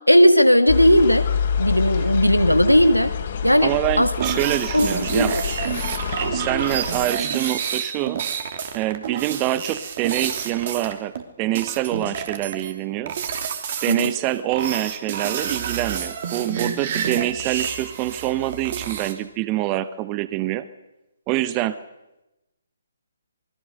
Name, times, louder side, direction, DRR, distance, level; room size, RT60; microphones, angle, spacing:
voice 1, 0.1-1.3 1.6-3.1 3.4-3.7 4.0-4.1 4.7-5.4 13.9-14.1, equal, 90° left, 9 dB, 2.0 m, -16 dB
sound 1, 0.7-7.1, left 7 dB, 40° left, 3.4 m, -27 dB
voice 2, 3.6-5.4 6.3-8.2 8.7-13.1 13.8-20.7 21.3-21.8, right 15 dB, 20° right, 15 dB, 1.0 m, -25 dB
sound 2, 4.2-11.2 11.5-12.7 13.1-14.1 14.5-19.1, right 7 dB, 40° right, 3.0 m, -29 dB
27.0 x 21.5 x 6.6 m, 0.96 s
figure-of-eight pair, 135°, 0 cm